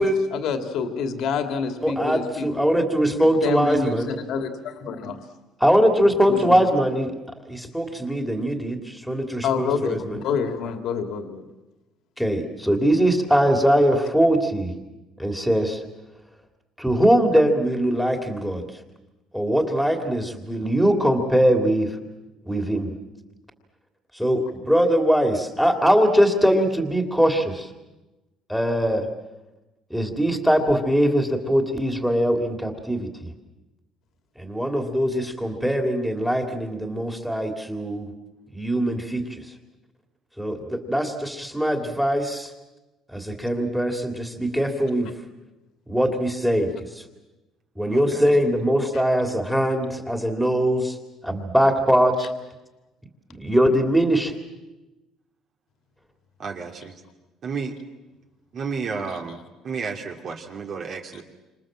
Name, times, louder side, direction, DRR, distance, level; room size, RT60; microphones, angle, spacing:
voice 1, 0.0-2.7 3.4-5.2 6.3-6.6 9.4-11.4 52.2-52.3 59.1-59.2, left 5 dB, 60° left, 6 dB, 2.8 m, -28 dB
voice 2, 1.8-4.1 5.6-7.1 7.5-10.2 12.2-14.7 15.2-15.8 16.8-18.6 19.3-21.9 22.5-22.9 24.2-27.7 28.5-29.1 29.9-33.3 34.4-38.1 38.5-39.4 40.4-42.5 43.1-45.1 45.9-46.7 47.8-51.0 51.2-52.3 53.3-54.3, equal, ahead, 4 dB, 2.9 m, -21 dB
voice 3, 47.9-48.2 56.4-56.9 57.4-57.7 58.5-61.2, right 5 dB, 40° right, 2 dB, 2.8 m, -32 dB
29.5 x 26.5 x 7.6 m, 1.1 s
cardioid pair, 155°, 0 cm